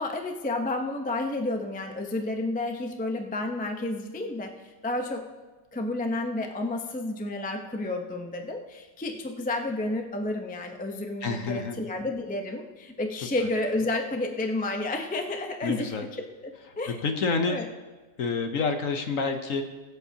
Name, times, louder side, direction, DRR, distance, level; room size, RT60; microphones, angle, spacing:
voice 1, 0.0-5.2 5.7-15.9 16.4-16.5 16.8-17.0 17.4-17.7, left 2 dB, 10° left, 4 dB, 0.4 m, -31 dB
voice 2, 11.2-11.8 15.6-16.1 17.0-17.6 18.2-19.6, left 4 dB, 55° left, 6 dB, 1.1 m, -28 dB
23.5 x 8.0 x 2.8 m, 1.3 s
omnidirectional pair, 1.9 m